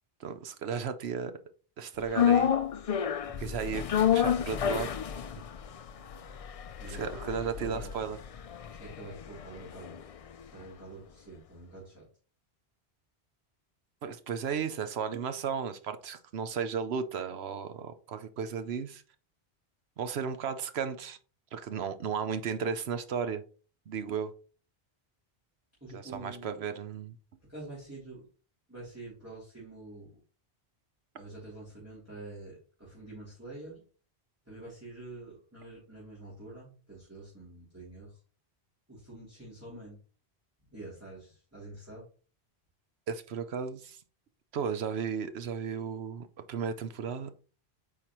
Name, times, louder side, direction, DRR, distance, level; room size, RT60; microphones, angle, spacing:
voice 1, 0.2-1.3 1.8-2.5 3.4-3.9 4.1-4.9 6.9-8.2 14.0-19.0 20.0-21.2 21.5-23.4 23.9-24.3 25.9-27.1 43.1-44.0 44.5-47.3, right 6 dB, 75° right, 1.0 m, -34 dB
sound 1, 2.1-10.4 10.7-10.8, left 9 dB, 60° left, 0.4 m, -30 dB
voice 2, 6.8-7.9 8.7-10.1 10.5-12.1 25.8-26.6 27.5-28.3 28.7-30.2 31.2-33.8 34.4-38.2 38.9-40.0 40.7-42.1, right 2 dB, 15° right, 3.1 m, -47 dB
8.6 x 4.8 x 3.0 m
omnidirectional pair, 1.1 m